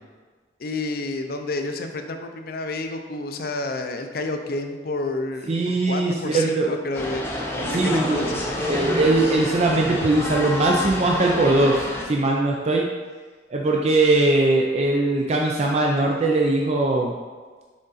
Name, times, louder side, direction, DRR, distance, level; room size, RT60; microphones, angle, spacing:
voice 1, 0.6-5.5 5.9-7.3 7.6-8.4, left 2 dB, 55° left, 5 dB, 0.5 m, -29 dB
voice 2, 5.5-6.7 7.7-12.9 13.5-17.1, right 2 dB, 35° right, -1 dB, 0.5 m, -21 dB
sound 1, 6.9-12.1, left 1 dB, 15° left, 0.7 m, -28 dB
6.3 x 3.8 x 4.0 m, 1.4 s
head